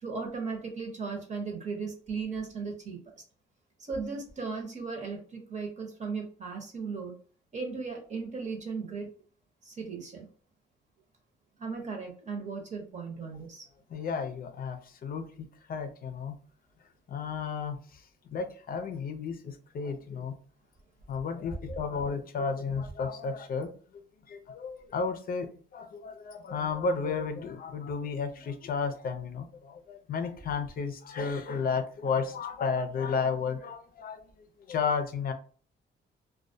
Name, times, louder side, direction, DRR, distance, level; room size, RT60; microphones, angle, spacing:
voice 1, 0.0-3.0 3.9-7.1 7.5-9.1 9.6-10.3 11.6-13.7, right 4 dB, 35° right, 2 dB, 0.9 m, -36 dB
voice 2, 13.9-16.4 17.1-18.0 18.3-20.4 21.1-23.7 24.3-34.2 34.7-35.3, left 5 dB, 45° left, 7 dB, 0.5 m, -33 dB
2.2 x 2.2 x 2.6 m, 0.43 s
cardioid pair, 90°, 20 cm